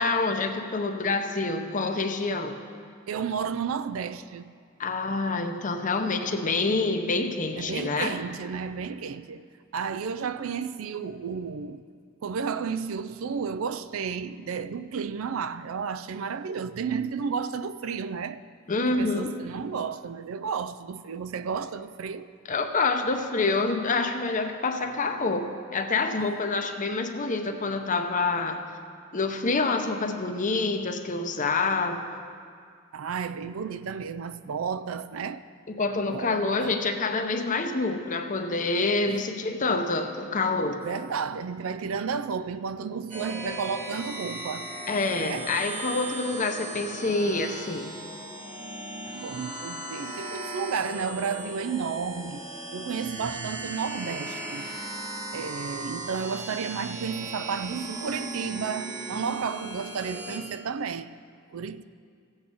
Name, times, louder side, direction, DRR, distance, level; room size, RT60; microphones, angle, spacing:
voice 1, 0.0-2.6 4.8-8.1 18.7-19.3 22.5-28.6 29.1-32.2 35.7-40.8 44.9-47.9, left 3 dB, 40° left, 0.8 m, -27 dB
voice 2, 3.1-4.5 7.6-9.4 9.7-11.8 12.2-18.4 18.9-22.3 26.2-26.3 32.9-35.4 36.1-36.8 39.1-39.3 40.8-44.7 45.2-45.5 45.9-46.0 49.1-52.4 52.7-54.7 55.3-61.1 61.5-61.8, right 6 dB, 80° right, 0.4 m, -32 dB
sound 1, 43.1-60.4, right 2 dB, 35° right, 1.6 m, -37 dB
15.0 x 8.0 x 5.4 m
head